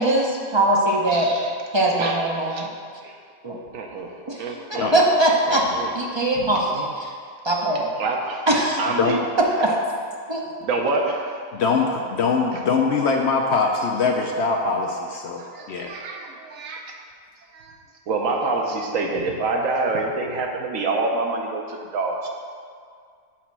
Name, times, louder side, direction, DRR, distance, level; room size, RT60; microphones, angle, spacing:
voice 1, 0.0-1.3 1.7-2.7 3.4-3.6 4.3-4.4 4.7-5.7 5.9-7.1 7.4-7.9 8.5-8.8 9.6-9.7 10.3-10.4, right 1 dB, 35° right, -2 dB, 0.5 m, -21 dB
voice 2, 1.1-1.5 2.0-2.2 2.5-2.7 3.0-3.2 3.7-4.9 5.5-5.9 6.4-6.5 8.0-8.4 8.8-9.2 10.6-11.4 15.4-16.9 17.5-17.8 18.1-22.3, right 3 dB, 70° right, 2 dB, 1.1 m, -27 dB
voice 3, 11.5-15.4 15.7-15.9, left 4 dB, 65° left, 1 dB, 0.7 m, -22 dB
6.0 x 4.2 x 5.9 m, 2.1 s
omnidirectional pair, 1.5 m